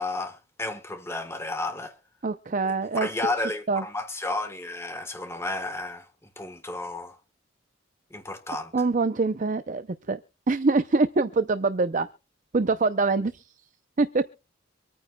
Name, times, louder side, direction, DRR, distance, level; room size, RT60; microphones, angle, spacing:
voice 1, 0.0-2.0 2.6-6.1 6.4-7.2 8.1-8.7, left 2 dB, 15° left, 1.3 m, -32 dB
voice 2, 2.2-3.1 3.7-3.8 8.7-9.8 10.1-10.2 10.5-12.1 12.5-13.4 14.0-14.3, right 3 dB, 40° right, 0.5 m, -24 dB
25.5 x 9.4 x 2.3 m
head